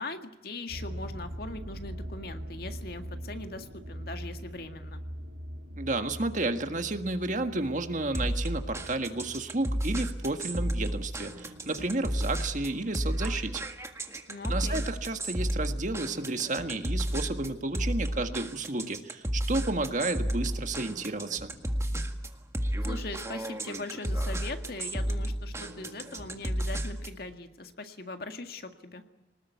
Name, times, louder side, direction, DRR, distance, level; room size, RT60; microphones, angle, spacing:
voice 1, 0.0-5.0 14.3-14.8 22.8-29.0, left 2 dB, 60° left, 6 dB, 1.9 m, -40 dB
sound 1, 0.7-13.0 13.5-13.9 14.5-14.6 14.9-15.0, equal, 85° right, 3.9 m, -43 dB
voice 2, 5.7-13.6 14.5-21.5, right 2 dB, 45° right, 7 dB, 1.7 m, -31 dB
sound 2, 8.1-27.2, right 1 dB, 15° right, 1.8 m, -32 dB
25.0 x 20.0 x 9.4 m, 1.0 s
head